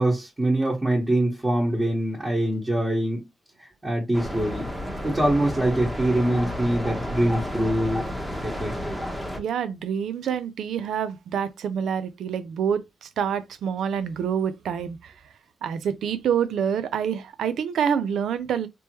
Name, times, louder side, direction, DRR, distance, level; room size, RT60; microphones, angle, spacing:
voice 1, 0.0-3.2 3.8-4.7 5.0-8.1 8.4-9.0, right 1 dB, 20° right, 1.5 m, -24 dB
sound 1, 4.1-9.4, equal, ahead, 1.2 m, -31 dB
voice 2, 9.4-15.1 15.6-18.7, right 8 dB, 85° right, 0.5 m, -27 dB
3.4 x 3.0 x 3.0 m
cardioid pair, 75°, 0 cm